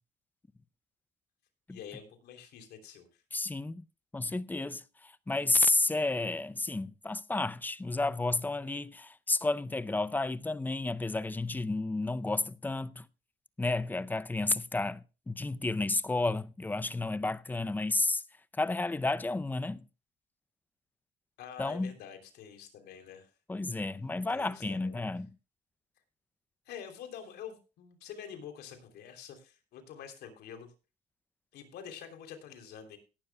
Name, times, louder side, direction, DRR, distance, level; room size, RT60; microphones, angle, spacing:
voice 1, 1.7-3.2 21.4-23.3 24.3-25.0 26.6-30.7 31.5-33.0, left 8 dB, 75° left, 3.2 m, -47 dB
voice 2, 3.3-3.8 4.1-13.1 13.6-18.2 18.5-19.9 21.6-21.9 23.5-25.3, left 2 dB, 10° left, 0.5 m, -31 dB
17.5 x 11.5 x 2.2 m
cardioid pair, 110°, 17 cm